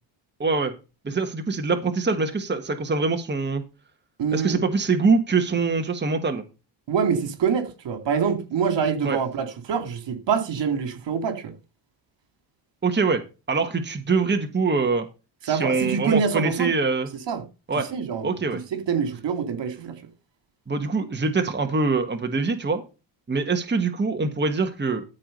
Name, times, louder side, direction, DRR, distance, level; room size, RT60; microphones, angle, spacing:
voice 1, 0.4-0.7 1.0-3.6 4.3-6.4 9.0-9.2 12.8-13.2 13.5-15.0 15.5-17.1 17.7-17.9 18.2-18.6 20.7-22.8 23.3-25.0, right 4 dB, 25° right, 1.6 m, -24 dB
voice 2, 4.2-4.6 6.9-11.4 15.5-16.7 17.3-17.4 17.9-18.3 18.7-19.9, right 6 dB, 70° right, 2.8 m, -25 dB
13.5 x 4.8 x 5.3 m
cardioid pair, 95°, 45 cm